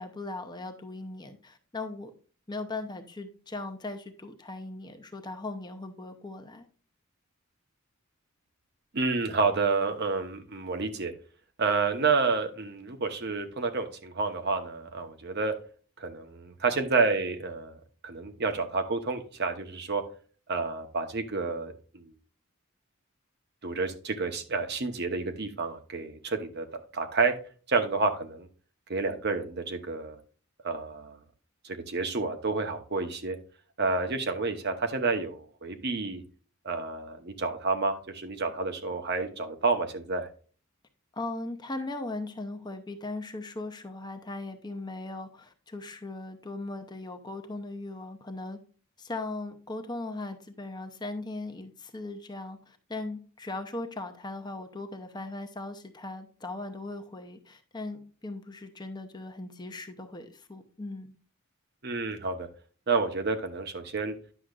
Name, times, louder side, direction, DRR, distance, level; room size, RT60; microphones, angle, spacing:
voice 1, 0.0-2.1 2.5-6.7 41.1-48.6 49.0-61.1, left 2 dB, 20° left, 7 dB, 0.7 m, -38 dB
voice 2, 8.9-11.1 11.6-15.5 16.0-17.8 18.0-20.0 20.5-22.1 23.6-26.7 26.9-27.4 27.7-28.5 28.9-30.2 30.6-31.2 31.6-33.4 33.8-36.2 36.6-40.3 61.8-62.5 62.9-64.1, right 4 dB, 50° right, 6 dB, 1.0 m, -29 dB
10.0 x 6.4 x 2.4 m, 0.40 s
head